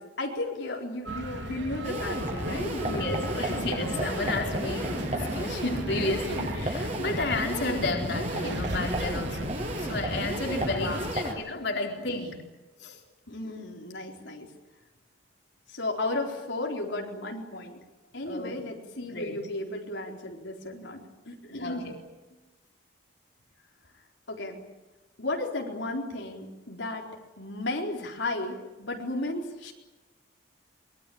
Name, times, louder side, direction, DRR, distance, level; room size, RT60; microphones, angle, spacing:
voice 1, 0.0-3.8 10.7-11.2 13.3-14.5 15.7-17.8 18.1-21.9 24.3-24.6 25.2-27.1 27.4-29.7, left 2 dB, 75° left, 0 dB, 4.1 m, -34 dB
sound 1, 1.1-11.1, right 1 dB, 70° right, 3.7 m, -36 dB
sound 2, 1.8-11.3, right 1 dB, 35° right, 7.1 m, -33 dB
voice 2, 2.8-12.4 12.8-13.0 18.2-18.6 19.0-19.4 21.6-22.0, left 2 dB, 60° left, 2 dB, 4.0 m, -32 dB
24.5 x 22.5 x 8.7 m, 1.1 s
head